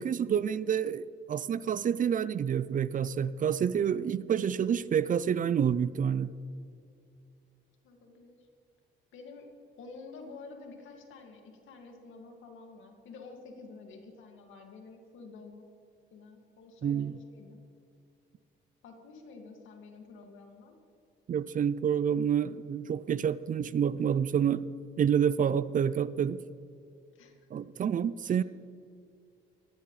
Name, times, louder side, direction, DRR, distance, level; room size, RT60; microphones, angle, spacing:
voice 1, 0.0-6.3 16.8-17.2 21.3-24.7 25.0-26.4 27.5-28.4, right 8 dB, 45° right, 17 dB, 0.4 m, -28 dB
voice 2, 7.8-8.5 9.1-15.6 16.1-17.6 18.8-20.8 27.1-27.5 28.3-28.4, left 4 dB, 80° left, 3 dB, 2.1 m, -49 dB
18.5 x 14.0 x 3.2 m, 2.4 s
cardioid pair, 90°, 20 cm